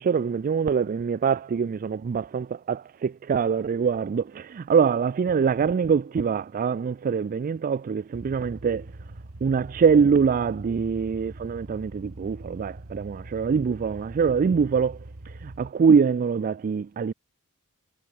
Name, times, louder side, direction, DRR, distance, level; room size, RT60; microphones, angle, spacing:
voice 1, 0.0-8.9 9.4-15.0 15.3-17.1, right 6 dB, 40° right, 0.3 m, -24 dB
sound 1, 8.1-15.7, right 2 dB, 70° right, 1.5 m, -43 dB
head